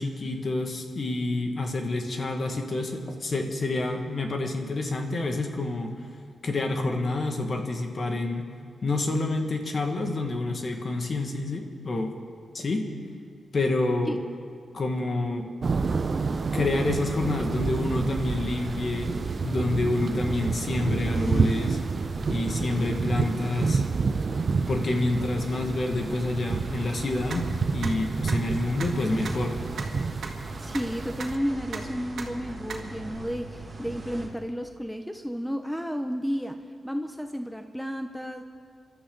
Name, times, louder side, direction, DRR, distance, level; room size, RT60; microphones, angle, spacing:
voice 1, 0.0-5.9 6.4-8.5 8.8-12.1 12.5-12.9 13.5-14.2 14.7-15.5 16.5-19.1 19.4-21.8 22.3-23.8 24.7-29.6, left 2 dB, 45° left, 3 dB, 1.7 m, -28 dB
sound 1, 15.6-31.4, right 4 dB, 45° right, 0.6 m, -29 dB
sound 2, 15.7-34.3, right 2 dB, 30° right, 2.5 m, -40 dB
sound 3, 27.3-27.4 27.8-27.9 28.3-28.4 28.8-28.9 29.3-29.4 29.8-29.9 30.2-30.3 30.7-30.8 31.2-31.3 31.7-31.8 32.2-32.3 32.7-32.8 33.1-33.2, right 6 dB, 70° right, 2.0 m, -35 dB
voice 2, 30.6-36.6 36.8-38.4, equal, ahead, 6 dB, 0.7 m, -32 dB
29.5 x 12.5 x 3.9 m, 2.1 s
cardioid pair, 100°, 0 cm